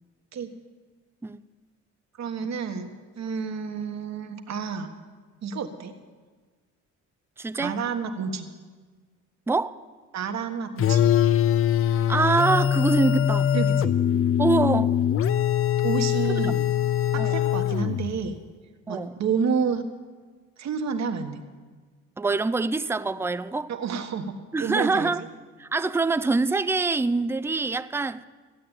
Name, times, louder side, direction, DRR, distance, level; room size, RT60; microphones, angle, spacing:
voice 1, 2.2-2.9 3.1-4.9 5.4-5.9 7.6-8.5 10.1-11.0 13.5-14.3 15.8-16.6 17.1-18.4 18.9-19.8 20.6-21.4 23.7-24.3 24.6-25.3, right 6 dB, 65° right, 1.5 m, -29 dB
voice 2, 7.4-7.8 9.5-9.8 11.9-13.5 14.4-14.9 16.4-16.5 17.2-17.4 18.9-19.2 22.2-23.7 24.5-25.2 25.6-28.2, right 3 dB, 10° right, 0.5 m, -25 dB
sound 1, 10.8-18.3, left 10 dB, 45° left, 0.5 m, -22 dB
15.0 x 8.7 x 8.9 m
cardioid pair, 90°, 30 cm